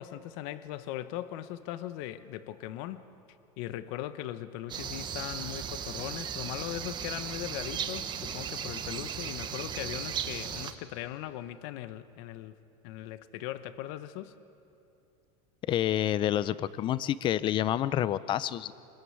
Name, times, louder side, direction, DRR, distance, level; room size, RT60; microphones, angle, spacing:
voice 1, 0.0-3.0 3.6-12.5 12.8-14.3, left 13 dB, 60° left, 13 dB, 1.0 m, -39 dB
sound 1, 4.7-10.7, right 8 dB, 25° right, 1.1 m, -36 dB
voice 2, 15.7-18.7, left 11 dB, 25° left, 18 dB, 0.5 m, -28 dB
24.5 x 21.0 x 9.6 m, 2.7 s
supercardioid pair, 160°, 18 cm